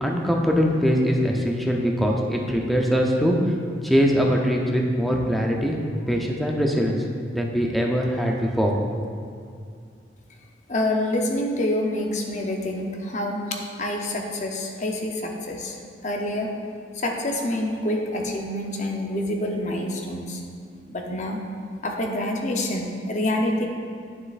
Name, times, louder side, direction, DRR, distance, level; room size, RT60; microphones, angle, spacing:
voice 1, 0.0-3.4 3.8-5.8 6.1-6.9 7.3-8.8, equal, ahead, 0 dB, 0.5 m, -22 dB
voice 2, 10.7-15.8 16.0-16.5 16.9-20.4 20.9-21.4 21.8-23.6, left 1 dB, 40° left, 1 dB, 0.7 m, -27 dB
9.2 x 6.6 x 2.5 m, 2.2 s
head